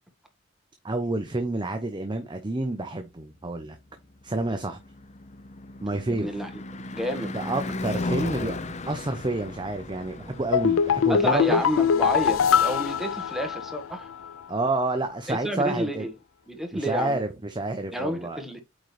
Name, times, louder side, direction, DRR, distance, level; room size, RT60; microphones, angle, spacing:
voice 1, 0.8-3.8 4.2-4.8 5.8-6.3 7.3-8.6 8.9-11.6 14.5-16.1 16.7-18.4, right 2 dB, 25° right, 0.8 m, -29 dB
Car passing by / Truck / Engine, 3.9-14.2, left 2 dB, 35° left, 0.7 m, -37 dB
voice 2, 6.1-6.5 6.9-7.3 11.1-14.1 15.3-16.1 16.5-17.2 17.9-18.6, equal, ahead, 1.4 m, -30 dB
sound 1, 10.5-14.0 14.2-14.3, left 7 dB, 90° left, 0.4 m, -22 dB
8.9 x 3.9 x 3.3 m
head